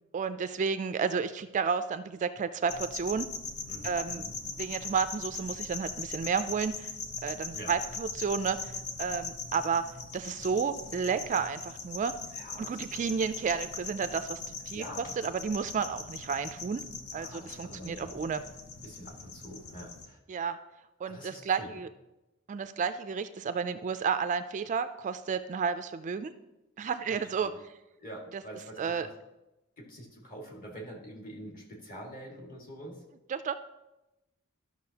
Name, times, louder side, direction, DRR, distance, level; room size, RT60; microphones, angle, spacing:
voice 1, 0.1-3.3 3.8-4.3 4.6-6.9 7.2-9.8 10.1-12.1 12.6-14.4 14.7-16.8 17.1-18.4 20.3-20.6 21.0-21.9 22.5-26.3 26.8-27.7 28.3-28.4 28.8-29.1 33.3-33.5, right 6 dB, 35° right, 11 dB, 0.3 m, -31 dB
sound 1, 2.7-20.1, left 4 dB, 85° left, 0.8 m, -41 dB
voice 2, 3.7-4.3 7.5-7.7 12.3-13.1 14.7-15.1 17.1-18.2 18.8-20.2 21.0-21.7 27.1-27.6 28.0-29.1 29.8-33.0, equal, 40° left, -2 dB, 2.0 m, -45 dB
13.0 x 6.1 x 2.8 m, 0.98 s
head